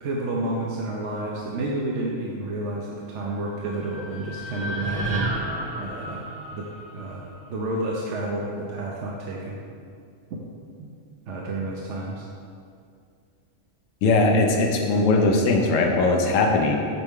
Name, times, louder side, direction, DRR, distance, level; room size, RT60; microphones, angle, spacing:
voice 1, 0.0-5.3 5.8-6.6 6.9-9.6 11.3-12.3, right 2 dB, 70° right, -3 dB, 1.0 m, -30 dB
sound 1, 3.3-7.6, right 1 dB, 50° right, 1.3 m, -33 dB
voice 2, 14.0-16.8, left 3 dB, 75° left, 2 dB, 1.1 m, -20 dB
8.2 x 4.5 x 3.7 m, 2.3 s
omnidirectional pair, 1.3 m